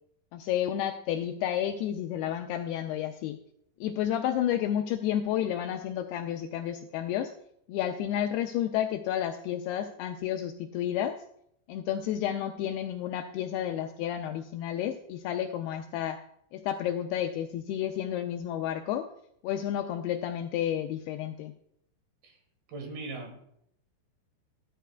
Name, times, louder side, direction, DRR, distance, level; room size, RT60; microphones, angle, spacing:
voice 1, 0.3-3.4 3.8-7.3 7.7-11.2 11.7-16.2 16.5-19.1 19.4-21.5, left 10 dB, 85° left, 6 dB, 2.3 m, -31 dB
voice 2, 22.7-23.5, right 3 dB, 65° right, 3 dB, 3.4 m, -39 dB
13.5 x 12.5 x 2.3 m, 0.73 s
omnidirectional pair, 5.1 m